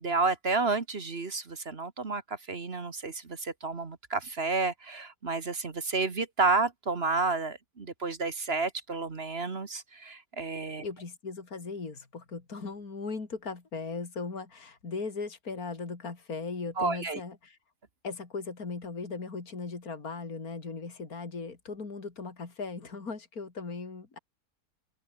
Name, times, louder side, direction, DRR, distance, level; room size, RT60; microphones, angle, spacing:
voice 1, 0.0-10.9 16.8-17.2, right 3 dB, 40° right, 1.7 m, -31 dB
voice 2, 10.8-17.6 18.0-24.2, left 4 dB, 60° left, 3.7 m, -38 dB
omnidirectional pair, 1.7 m